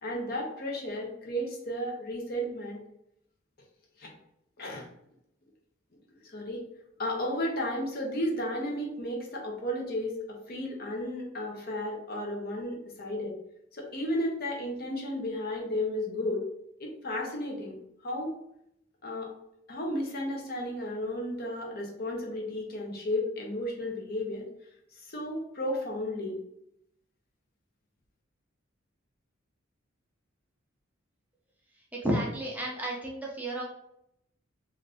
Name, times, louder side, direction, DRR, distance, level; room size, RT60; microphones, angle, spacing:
voice 1, 0.0-2.8 4.0-4.1 4.6-4.8 6.3-6.6 7.0-13.3 13.7-16.4 16.8-17.8 18.0-18.3 19.0-19.3 19.7-24.5 25.0-26.4, left 1 dB, 50° left, 0 dB, 0.7 m, -33 dB
voice 2, 31.9-33.6, right 1 dB, 10° right, -3 dB, 0.5 m, -31 dB
2.5 x 2.4 x 3.3 m, 0.77 s
head